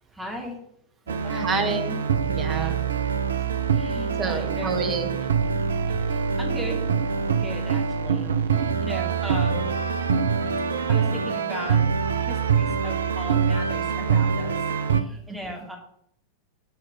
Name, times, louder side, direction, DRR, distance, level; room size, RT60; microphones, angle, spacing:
voice 1, 0.1-0.6 1.1-1.5 3.6-4.8 5.9-6.8 7.4-9.7 10.6-11.8 12.1-15.8, equal, 5° right, 0 dB, 2.4 m, -38 dB
sound 1, 1.1-15.0, right 6 dB, 70° right, 0.6 m, -24 dB
voice 2, 1.3-2.8 4.2-5.1 15.3-15.5, right 4 dB, 25° right, 6 dB, 1.5 m, -29 dB
7.7 x 4.8 x 6.3 m, 0.74 s
figure-of-eight pair, 90°, 0 cm